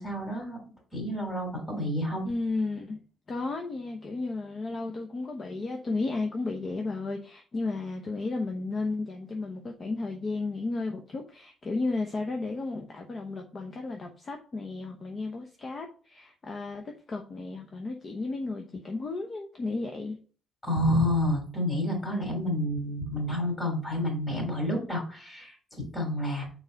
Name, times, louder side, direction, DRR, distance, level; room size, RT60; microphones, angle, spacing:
voice 1, 0.0-2.2 20.6-26.5, left 1 dB, 15° left, 3.2 m, -29 dB
voice 2, 2.2-3.0 3.3-20.2, left 3 dB, 35° left, 0.9 m, -33 dB
6.7 x 4.7 x 4.0 m
cardioid pair, 135°, 0 cm